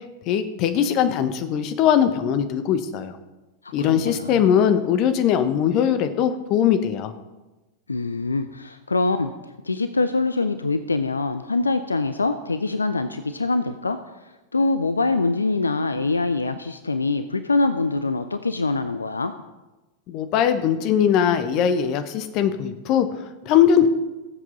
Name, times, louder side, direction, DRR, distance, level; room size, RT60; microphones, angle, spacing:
voice 1, 0.3-3.1 3.7-7.1 20.1-23.9, left 9 dB, 40° left, 10 dB, 1.1 m, -20 dB
voice 2, 3.6-4.5 7.9-9.3 9.6-14.0 14.5-19.3, left 3 dB, 80° left, 11 dB, 0.5 m, -24 dB
19.5 x 7.7 x 3.9 m, 1.1 s
figure-of-eight pair, 90°, 0 cm